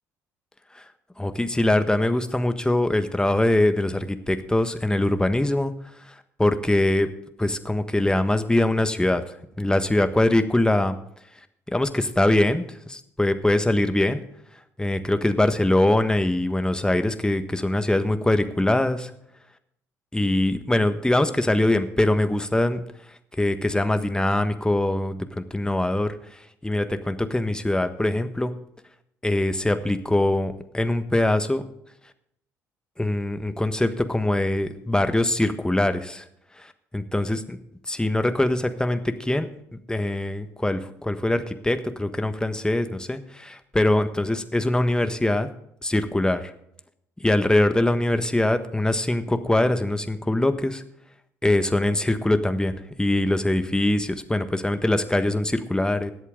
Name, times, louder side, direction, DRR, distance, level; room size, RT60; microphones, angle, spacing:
voice 1, 1.2-7.1 7.4-10.9 11.7-14.2 14.8-19.1 20.1-22.8 23.3-28.5 29.2-31.6 33.0-36.3 36.6-37.6 37.9-45.5 45.8-46.5 47.2-50.8 51.4-52.7 53.0-56.1, left 1 dB, 10° left, 9 dB, 1.4 m, -23 dB
21.0 x 8.1 x 3.8 m, 0.75 s
hypercardioid pair, 50°, 9 cm